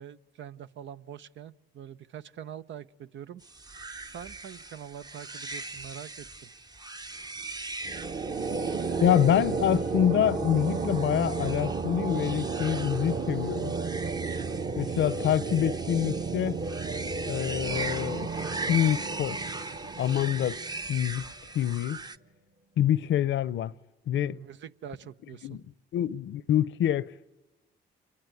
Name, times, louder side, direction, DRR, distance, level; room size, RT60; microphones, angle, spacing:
voice 1, 0.0-3.4 4.0-6.5 24.1-25.6, right 9 dB, 70° right, 0.9 m, -44 dB
sound 1, 3.4-22.2, right 3 dB, 20° right, 0.9 m, -40 dB
sound 2, 7.8-21.0, right 4 dB, 35° right, 1.3 m, -33 dB
voice 2, 9.0-13.7 14.8-16.6 17.3-18.3 18.6-19.4 20.0-20.6 20.9-21.2 21.5-22.0 22.8-23.7 24.1-24.4 25.4-25.6 25.9-27.1, left 10 dB, 70° left, 0.8 m, -26 dB
27.0 x 21.5 x 9.4 m
cardioid pair, 90°, 20 cm